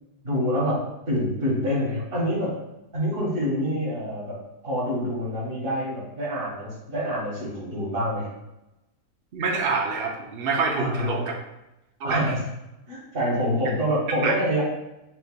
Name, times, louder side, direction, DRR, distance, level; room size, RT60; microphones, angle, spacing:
voice 1, 0.2-0.8 1.0-2.5 2.9-4.4 4.6-8.3 10.8-11.3 12.0-12.4 12.9-14.6, equal, 35° right, -8 dB, 1.6 m, -26 dB
voice 2, 9.3-11.3 12.0-12.3 14.2-14.3, right 4 dB, 90° right, 1 dB, 0.5 m, -26 dB
7.8 x 2.7 x 2.2 m, 0.92 s
omnidirectional pair, 1.8 m